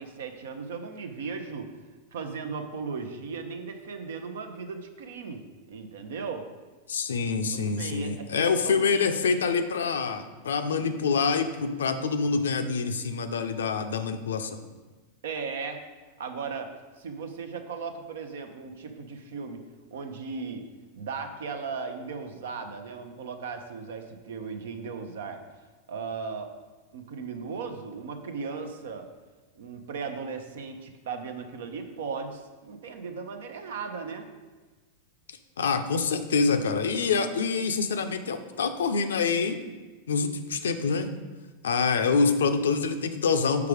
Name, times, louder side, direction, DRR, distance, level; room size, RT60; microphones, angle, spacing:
voice 1, 0.0-1.7 2.1-6.5 7.5-8.8 15.2-15.8 16.2-16.7 17.0-19.6 19.9-20.6 20.9-25.4 25.9-26.5 26.9-29.1 29.5-34.3, right 5 dB, 80° right, 7 dB, 0.7 m, -37 dB
voice 2, 6.9-14.6 35.6-39.6 40.1-41.1 41.6-43.7, left 5 dB, 90° left, 8 dB, 0.5 m, -26 dB
4.8 x 4.8 x 4.9 m, 1.3 s
hypercardioid pair, 110°, 0 cm